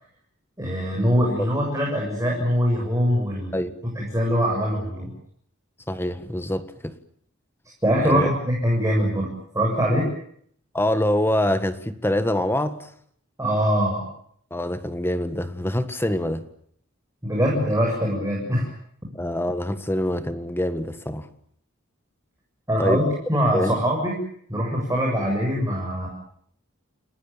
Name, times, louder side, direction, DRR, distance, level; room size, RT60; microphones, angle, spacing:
voice 1, 0.6-3.6 4.0-5.1 7.8-10.0 13.4-14.0 17.2-18.7 22.7-24.2 24.5-26.1, equal, 15° right, 7.3 m, -23 dB
voice 2, 5.9-7.0 8.0-8.3 10.7-12.9 14.5-16.4 19.2-21.3 22.8-23.0 23.5-23.8, left 1 dB, 10° left, 1.6 m, -25 dB
30.0 x 18.5 x 8.8 m
head